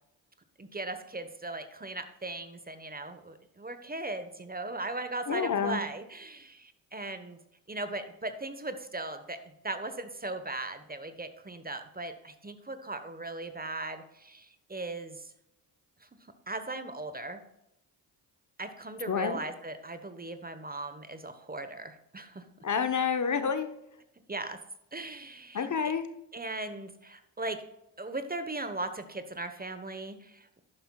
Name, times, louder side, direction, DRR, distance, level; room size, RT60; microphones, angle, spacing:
voice 1, 0.6-7.4 7.7-15.3 16.0-16.1 16.5-17.4 18.6-22.4 24.3-24.6 24.9-25.7 26.3-27.6 28.0-30.6, right 2 dB, 20° right, 9 dB, 1.2 m, -38 dB
voice 2, 5.3-5.8 19.1-19.4 22.6-23.7 25.5-26.1, left 6 dB, 40° left, 9 dB, 1.1 m, -28 dB
11.5 x 9.8 x 2.4 m, 0.84 s
hypercardioid pair, 45°, 46 cm